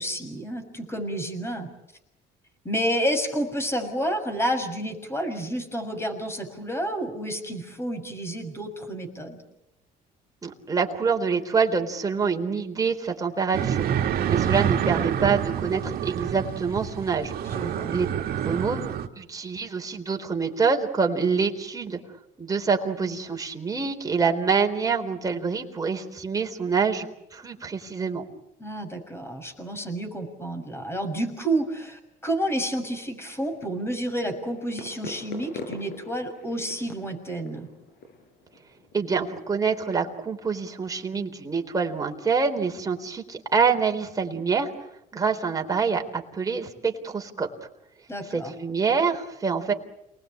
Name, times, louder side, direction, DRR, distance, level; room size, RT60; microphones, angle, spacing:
voice 1, 0.0-1.7 2.6-9.4 17.5-17.9 28.6-37.7 48.1-48.5, right 1 dB, 15° left, 7 dB, 6.3 m, -30 dB
voice 2, 10.4-13.8 14.3-17.3 17.6-18.1 18.4-22.0 22.4-28.2 38.9-44.9 45.1-47.5 48.3-49.7, right 5 dB, 20° right, 3 dB, 3.9 m, -26 dB
sound 1, 13.5-19.1, right 9 dB, 65° right, 2.0 m, -27 dB
sound 2, 33.5-39.2, left 3 dB, 75° left, 7.4 m, -43 dB
29.0 x 20.0 x 8.8 m, 0.86 s
cardioid pair, 110°, 17 cm